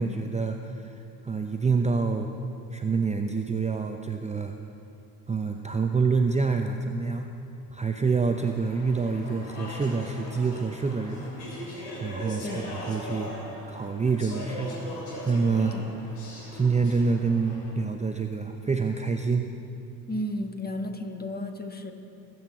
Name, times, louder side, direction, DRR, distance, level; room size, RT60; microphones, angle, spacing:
voice 1, 0.0-2.3 2.7-4.6 5.3-7.3 7.7-11.3 12.0-13.3 13.7-14.8 15.3-15.8 16.5-19.5, right 4 dB, 15° right, 5 dB, 0.7 m, -27 dB
Speech / Chatter, 8.3-17.7, left 1 dB, 75° left, 3.6 m, -40 dB
voice 2, 20.1-21.9, left 1 dB, 20° left, 5 dB, 1.5 m, -33 dB
20.0 x 8.2 x 4.5 m, 2.7 s
hypercardioid pair, 55°, 48 cm